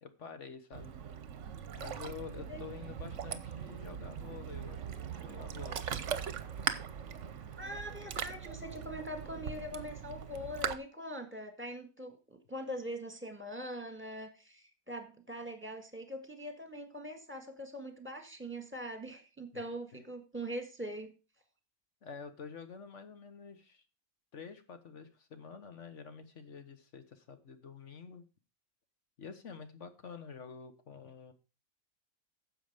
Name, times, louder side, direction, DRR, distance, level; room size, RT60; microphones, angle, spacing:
voice 1, 0.0-0.9 1.8-5.9 19.5-19.6 19.9-20.0 22.0-23.8 24.3-28.3 29.2-31.3, left 6 dB, 55° left, 9 dB, 1.5 m, -48 dB
Ocean, 0.7-10.8, right 7 dB, 60° right, 1.1 m, -40 dB
voice 2, 7.6-21.1, equal, 10° right, 6 dB, 1.8 m, -42 dB
10.0 x 7.5 x 5.0 m, 0.32 s
omnidirectional pair, 1.6 m